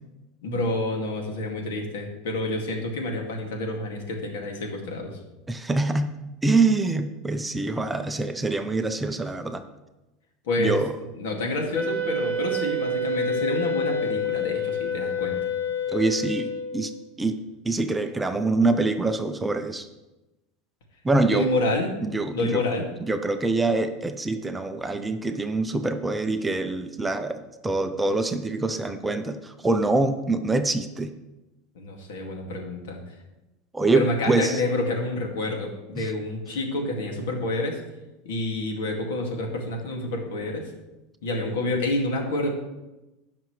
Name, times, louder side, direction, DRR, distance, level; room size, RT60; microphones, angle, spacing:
voice 1, 0.4-5.2 10.4-10.8 11.2-15.5 21.2-21.9 22.3-22.9 31.7-33.0 33.9-37.8 38.2-40.7 41.2-42.5, left 2 dB, 90° left, 1 dB, 2.1 m, -28 dB
voice 2, 5.5-6.1 6.4-9.6 10.6-10.9 15.9-16.9 17.2-17.4 17.6-19.9 21.0-21.5 22.0-22.6 23.1-31.1 33.7-34.6 36.0-36.1, right 3 dB, 10° right, 8 dB, 0.4 m, -25 dB
Wind instrument woodwind instrument, 11.7-16.9, left 2 dB, 65° left, 1.7 m, -28 dB
17.5 x 5.9 x 3.2 m, 1.0 s
supercardioid pair, 165°, 0 cm